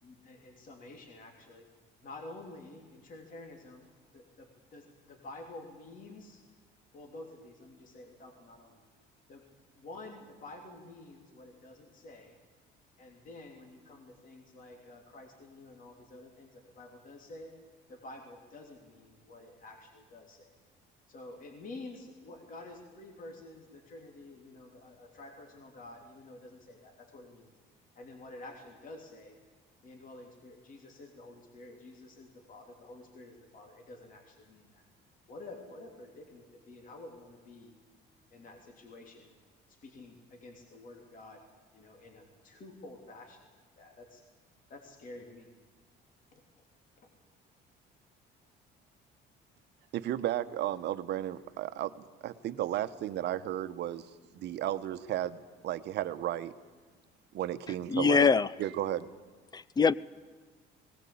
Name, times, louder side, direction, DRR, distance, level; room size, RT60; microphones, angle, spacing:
voice 1, 0.0-1.7 2.0-3.9 4.1-6.4 6.9-8.8 9.3-9.4 9.7-12.4 13.0-17.5 17.9-20.6 21.1-27.5 27.9-29.4 29.8-34.8 35.3-37.7 38.3-39.3 39.7-41.4 41.7-43.4 43.8-44.2 44.7-45.5 46.3-46.4 47.0-47.1, left 2 dB, 45° left, 2 dB, 3.3 m, -49 dB
voice 2, 49.9-51.9 52.2-54.0 54.4-56.5 57.3-58.3 58.6-59.1, right 12 dB, 65° right, 13 dB, 1.0 m, -33 dB
voice 3, 57.9-58.5 59.5-59.9, left 5 dB, 20° left, 20 dB, 0.5 m, -23 dB
19.0 x 18.5 x 8.6 m, 1.5 s
cardioid pair, 110°, 19 cm